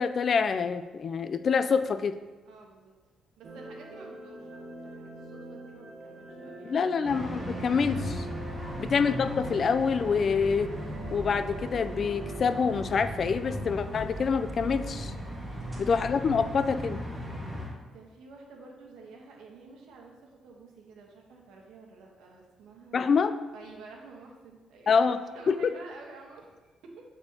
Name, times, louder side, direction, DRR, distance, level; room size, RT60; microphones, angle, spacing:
voice 1, 0.0-2.1 6.7-8.3 8.8-10.7 11.1-15.1 15.8-17.0 22.9-23.3 24.9-25.2 25.5-25.6, left 5 dB, 50° left, 11 dB, 0.3 m, -26 dB
voice 2, 2.4-2.9 3.4-7.0 15.4-15.8 17.9-23.2 23.5-25.0 25.3-26.9, right 3 dB, 85° right, 0 dB, 1.1 m, -50 dB
sound 1, 3.4-13.6, right 2 dB, 50° right, 1.0 m, -44 dB
sound 2, 7.0-17.7, equal, 15° right, 1.6 m, -37 dB
8.5 x 4.3 x 2.9 m, 1.2 s
cardioid pair, 90°, 0 cm